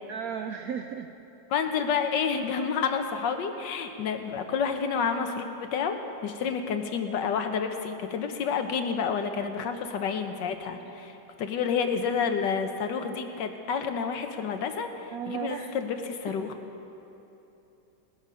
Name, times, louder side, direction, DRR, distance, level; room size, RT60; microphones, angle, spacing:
voice 1, 0.1-1.1 10.9-11.0 15.1-15.7, right 8 dB, 75° right, 6 dB, 0.8 m, -35 dB
voice 2, 1.5-16.5, left 6 dB, 75° left, 7 dB, 1.5 m, -29 dB
18.5 x 10.0 x 5.5 m, 3.0 s
omnidirectional pair, 2.0 m